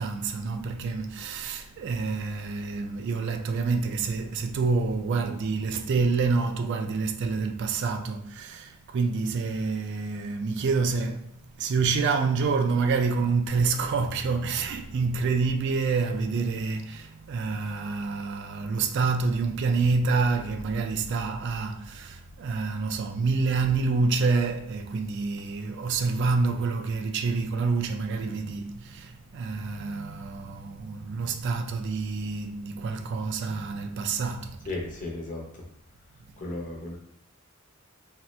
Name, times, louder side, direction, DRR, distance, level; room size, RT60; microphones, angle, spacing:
voice 1, 0.0-11.3 11.6-34.7, right 4 dB, 55° right, 0.3 m, -27 dB
voice 2, 34.6-35.6 36.4-37.0, left 2 dB, 40° left, 0.8 m, -35 dB
2.7 x 2.4 x 3.2 m
head